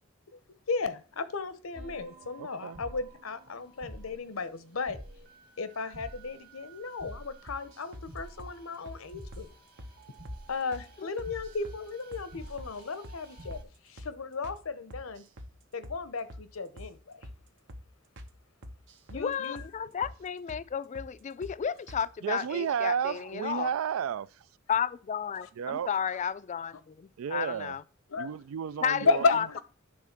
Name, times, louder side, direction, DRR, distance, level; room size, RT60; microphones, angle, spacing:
voice 1, 0.7-5.0 5.6-9.5 10.5-15.2 15.7-17.3 19.1-19.6 25.4-25.5 28.1-28.3 29.0-29.6, left 4 dB, 85° left, 0.8 m, -34 dB
sound 1, 1.7-13.6, right 1 dB, 45° right, 1.6 m, -49 dB
voice 2, 2.4-2.8 22.2-24.5 25.6-25.9 27.2-27.8 28.2-29.2, right 8 dB, 80° right, 0.3 m, -32 dB
sound 2, 7.5-8.1 8.4-8.6 8.9-9.0 9.3-9.5 9.8-9.9 10.3-10.4 10.7-10.9 11.2-11.8 12.1-12.3 12.6-12.7 13.0-13.2 13.5-13.7 14.0-14.1 14.4-14.6 14.9-15.5 15.8-16.0 16.3-16.5 16.8-16.9 17.2-17.4 17.7-17.9 18.2-18.3 18.6-19.3 19.6-19.7 20.0-20.2 20.5-20.6 20.9-21.1 21.4-21.6 21.9-22.0, equal, 65° right, 1.0 m, -45 dB
voice 3, 19.1-23.7 24.7-27.8 28.8-29.6, left 7 dB, 35° left, 0.3 m, -33 dB
10.5 x 3.6 x 5.8 m
head